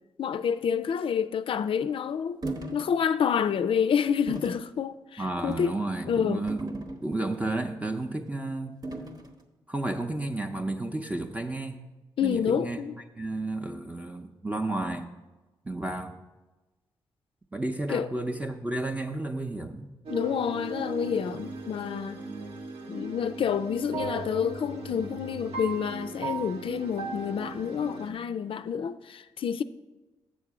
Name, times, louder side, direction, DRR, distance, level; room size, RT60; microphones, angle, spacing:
voice 1, 0.2-2.4 2.7-5.8 6.1-6.4 12.2-13.0 17.9-18.1 20.1-22.2 22.9-29.6, left 7 dB, 60° left, 0.4 m, -28 dB
sound 1, 2.4-2.9 3.3-3.5 4.3-4.6 5.4-5.7 6.5-7.4 8.8-9.3, right 2 dB, 40° right, 1.1 m, -37 dB
voice 2, 5.2-8.8 9.7-11.8 12.2-12.8 13.2-15.1 15.6-16.2 17.5-19.9, right 2 dB, 15° right, 0.7 m, -32 dB
sound 2, 20.1-28.1, right 3 dB, 70° right, 1.0 m, -37 dB
7.4 x 6.7 x 4.8 m
cardioid pair, 60°, 10 cm